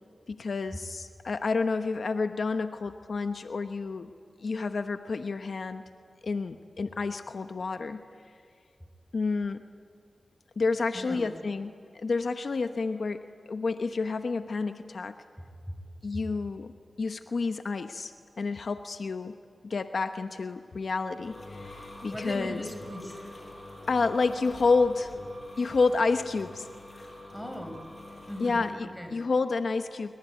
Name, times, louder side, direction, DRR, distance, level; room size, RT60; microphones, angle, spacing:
voice 1, 0.3-4.1 4.4-5.8 6.2-8.0 9.1-9.6 10.6-15.2 16.0-16.7 17.0-19.3 19.6-22.6 23.9-25.1 25.6-26.7 27.0-27.1 28.4-30.1, left 4 dB, 75° left, 8 dB, 1.0 m, -29 dB
voice 2, 10.9-11.3 22.1-23.2 27.3-27.8 28.3-29.1, equal, 5° left, 6 dB, 5.5 m, -38 dB
sound 1, 20.8-28.8, left 1 dB, 50° left, 5.9 m, -45 dB
26.5 x 23.5 x 9.4 m, 2.2 s
cardioid pair, 50°, 0 cm